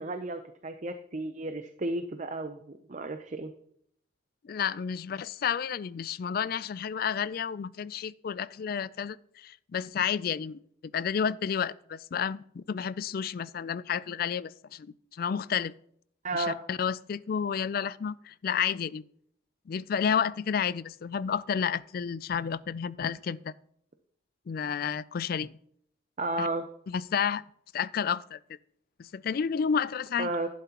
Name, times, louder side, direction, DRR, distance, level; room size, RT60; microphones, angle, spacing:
voice 1, 0.0-3.5 16.2-16.6 26.2-26.6 30.2-30.5, right 2 dB, 35° right, 0.6 m, -33 dB
voice 2, 4.4-10.6 10.9-15.7 16.3-19.0 19.7-23.5 24.5-25.6 26.4-26.5 26.9-27.4 27.7-28.4 29.0-30.3, left 7 dB, 45° left, 0.3 m, -31 dB
11.5 x 10.5 x 2.9 m
head